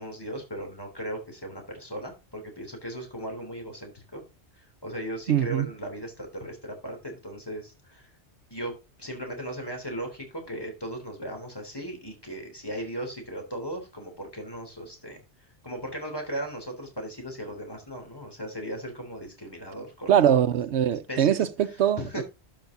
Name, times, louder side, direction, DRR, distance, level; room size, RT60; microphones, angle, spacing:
voice 1, 0.0-4.2 4.5-8.1 8.5-15.2 15.6-20.2 20.9-22.2, right 1 dB, 20° left, 3.5 m, -37 dB
voice 2, 5.3-5.7 20.1-22.0, right 9 dB, 80° right, 1.0 m, -22 dB
11.5 x 5.7 x 3.9 m
omnidirectional pair, 1.1 m